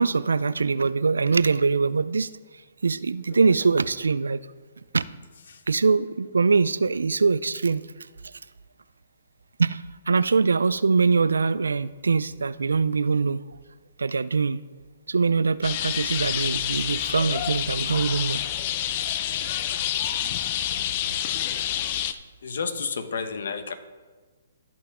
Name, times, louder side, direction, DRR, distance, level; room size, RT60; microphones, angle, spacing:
voice 1, 0.0-2.3 2.8-4.4 4.9-5.1 5.7-7.8 9.6-13.4 14.0-14.6 15.1-18.4, right 4 dB, 90° right, 17 dB, 0.3 m, -23 dB
sound 1, 15.6-22.1, left 11 dB, 40° left, 0.5 m, -28 dB
voice 2, 22.4-23.7, left 5 dB, 70° left, 10 dB, 1.0 m, -31 dB
14.5 x 5.8 x 3.6 m, 1.4 s
hypercardioid pair, 140°, 0 cm